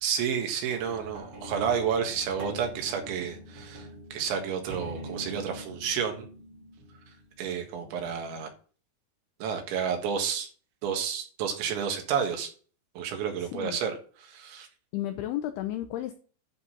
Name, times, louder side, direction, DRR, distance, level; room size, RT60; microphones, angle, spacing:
voice 1, 0.0-6.3 7.4-8.5 9.4-10.5 10.8-12.5 13.0-14.7, right 7 dB, 80° right, 4 dB, 4.0 m, -30 dB
sound 1, 0.7-7.4 8.1-8.2, right 1 dB, 40° right, 2.0 m, -44 dB
voice 2, 13.4-13.8 14.9-16.1, left 13 dB, 85° left, 8 dB, 2.3 m, -33 dB
11.0 x 3.9 x 7.2 m, 0.41 s
omnidirectional pair, 5.3 m